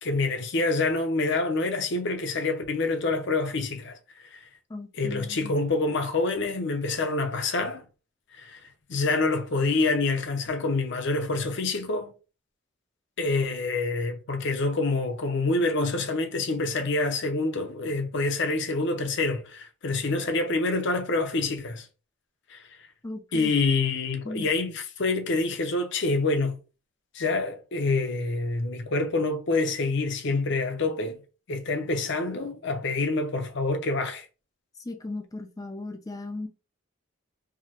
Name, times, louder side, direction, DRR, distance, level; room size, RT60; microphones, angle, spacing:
voice 1, 0.0-4.0 4.3-4.5 5.0-7.8 8.3-8.6 8.9-12.1 13.2-21.9 22.5-22.6 23.3-26.6 27.1-31.2 31.5-34.3, left 3 dB, 60° left, 0.7 m, -27 dB
voice 2, 4.7-5.5 23.0-23.5 24.2-24.5 34.8-36.5, left 2 dB, 15° left, 0.4 m, -37 dB
4.7 x 2.1 x 2.9 m
head